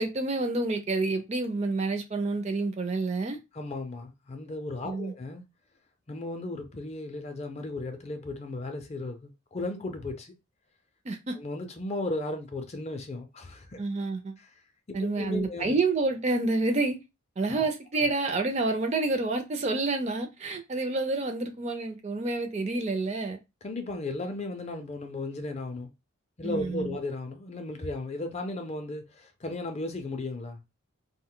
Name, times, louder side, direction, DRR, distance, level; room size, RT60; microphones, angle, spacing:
voice 1, 0.0-3.4 4.8-5.1 11.1-11.4 13.8-14.4 14.9-17.0 17.4-23.4 26.4-27.0, right 3 dB, 30° right, 0.4 m, -28 dB
voice 2, 3.5-5.4 6.1-10.3 11.3-13.8 14.4-14.5 14.9-15.8 17.5-17.7 23.6-25.9 26.4-30.6, left 2 dB, 30° left, 0.4 m, -35 dB
2.5 x 2.1 x 3.7 m
head